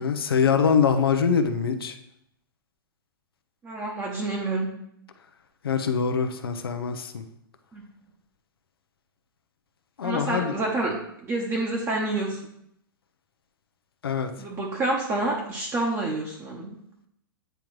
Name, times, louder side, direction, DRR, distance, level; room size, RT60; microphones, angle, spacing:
voice 1, 0.0-1.9 5.6-7.2 10.0-10.6 14.0-14.3, left 6 dB, 80° left, 8 dB, 0.7 m, -23 dB
voice 2, 3.6-4.7 7.7-7.8 10.0-10.9 11.2-12.4 14.4-16.8, right 2 dB, 20° right, -2 dB, 1.0 m, -28 dB
9.0 x 3.6 x 3.1 m, 0.74 s
hypercardioid pair, 115°, 12 cm